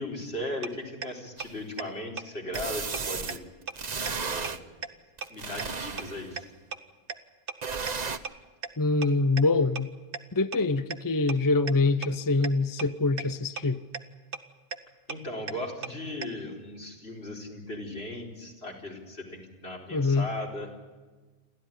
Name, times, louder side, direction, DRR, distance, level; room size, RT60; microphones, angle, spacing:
voice 1, 0.0-3.4 4.2-4.6 5.3-6.4 15.1-20.7, left 1 dB, 75° left, 0 dB, 4.7 m, -37 dB
sound 1, 0.6-0.7 1.0-1.1 1.4-1.5 1.8-1.9 2.2-2.3 2.6-2.7 2.9-3.0 3.3-3.4 3.7-3.8 4.1-4.2 4.4-4.5 4.8-4.9 5.2-5.3 5.6-5.7 6.0-6.1 6.4-6.5 6.7-6.8 7.1-7.2 7.5-7.6 7.9-8.0 8.2-8.3 8.6-8.7 9.0-9.1 9.4-9.5 9.8-9.9 10.1-10.2 10.5-10.6 10.9-11.0 11.3-11.4 11.7-11.8 12.0-12.1 12.4-12.5 12.8-12.9 13.2-13.3 13.6-13.7 13.9-14.0 14.3-14.4 14.7-14.8 15.1-15.2 15.5-15.6 15.8-15.9 16.2-16.3, right 5 dB, 60° right, 1.3 m, -34 dB
sound 2, 1.4-1.5 2.5-3.4 3.8-4.6 5.2-6.3 7.6-8.2, right 5 dB, 45° right, 1.1 m, -34 dB
voice 2, 8.8-9.9 10.3-13.8 19.9-20.3, left 3 dB, 20° left, 13 dB, 0.7 m, -25 dB
29.0 x 13.0 x 10.0 m, 1.3 s
omnidirectional pair, 1.1 m